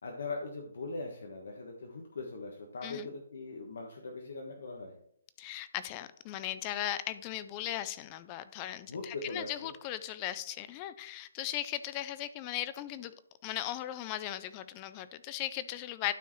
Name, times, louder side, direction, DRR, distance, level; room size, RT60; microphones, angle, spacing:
voice 1, 0.0-5.0 8.9-9.7, left 3 dB, 60° left, 2 dB, 1.3 m, -40 dB
voice 2, 5.4-13.1 13.4-16.1, left 13 dB, 15° left, 14 dB, 0.3 m, -38 dB
12.0 x 4.6 x 3.1 m, 0.69 s
hypercardioid pair, 175°, 0 cm